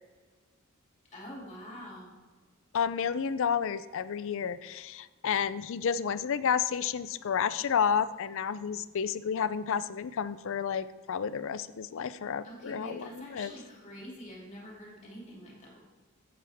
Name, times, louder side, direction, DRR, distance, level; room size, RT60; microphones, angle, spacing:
voice 1, 1.1-2.1 12.4-15.8, equal, 35° left, -3 dB, 2.7 m, -45 dB
voice 2, 2.7-13.5, left 7 dB, 65° left, 15 dB, 0.5 m, -31 dB
12.0 x 8.6 x 3.5 m, 1.4 s
head